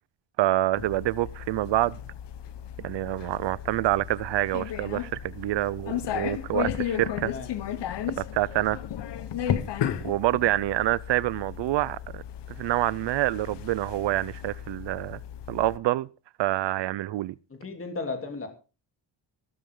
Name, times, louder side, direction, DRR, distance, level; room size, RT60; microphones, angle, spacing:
voice 1, 0.4-2.0 2.8-7.3 8.2-8.8 10.0-12.2 12.6-15.2 15.5-16.1 16.4-17.4, right 16 dB, 70° right, 0.6 m, -27 dB
sound 1, 0.7-15.8, left 10 dB, 65° left, 1.3 m, -34 dB
voice 2, 7.3-7.8 17.5-18.5, left 3 dB, 30° left, 3.2 m, -35 dB
16.0 x 13.5 x 3.8 m
cardioid pair, 125°, 45 cm